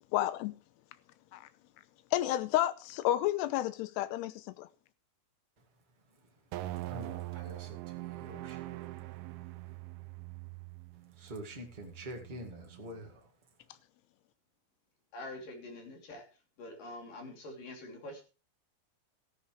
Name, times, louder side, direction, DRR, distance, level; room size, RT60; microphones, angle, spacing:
voice 1, 0.1-0.5 1.3-1.4 2.1-4.7, left 14 dB, 80° left, 2.8 m, -31 dB
sound 1, 6.5-13.0, right 17 dB, 75° right, 2.4 m, -43 dB
voice 2, 6.9-8.6 11.2-13.2, right 1 dB, 50° right, 0.5 m, -46 dB
voice 3, 15.1-16.2 16.6-18.2, left 1 dB, 55° left, 4.5 m, -45 dB
14.0 x 12.5 x 3.2 m
omnidirectional pair, 5.0 m